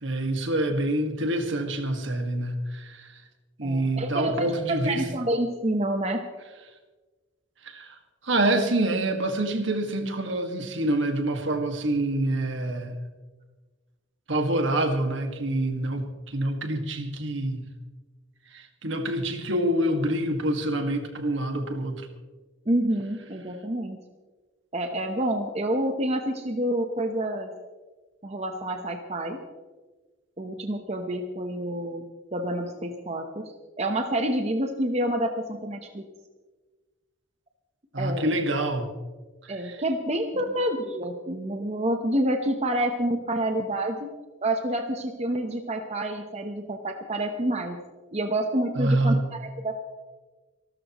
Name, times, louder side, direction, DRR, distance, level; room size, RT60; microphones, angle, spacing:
voice 1, 0.0-3.2 3.6-5.0 7.6-8.0 8.2-12.9 14.3-17.7 18.5-22.0 37.9-38.9 39.4-39.8 40.3-40.5 48.8-49.2, right 1 dB, 70° right, 5 dB, 1.9 m, -26 dB
voice 2, 3.6-6.2 22.7-24.0 24.7-27.5 28.2-29.4 30.4-32.0 32.3-33.5 33.8-36.1 38.0-38.3 39.5-44.1 44.4-47.8 48.1-49.8, right 1 dB, 35° right, 4 dB, 1.0 m, -28 dB
26.5 x 13.0 x 3.1 m, 1.3 s
head